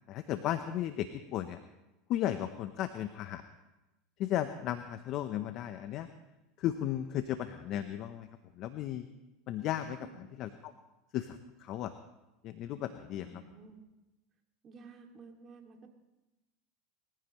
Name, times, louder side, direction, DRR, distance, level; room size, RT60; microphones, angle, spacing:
voice 1, 0.1-1.6 2.1-3.4 4.2-6.1 6.6-8.3 8.6-9.1 9.5-10.0 10.4-10.7 11.1-11.9 12.4-13.2, left 12 dB, 50° left, 10 dB, 0.8 m, -35 dB
voice 2, 13.2-13.8 14.6-15.9, right 4 dB, 35° right, 2 dB, 2.5 m, -52 dB
22.5 x 15.0 x 3.2 m, 1.0 s
supercardioid pair, 110°, 0 cm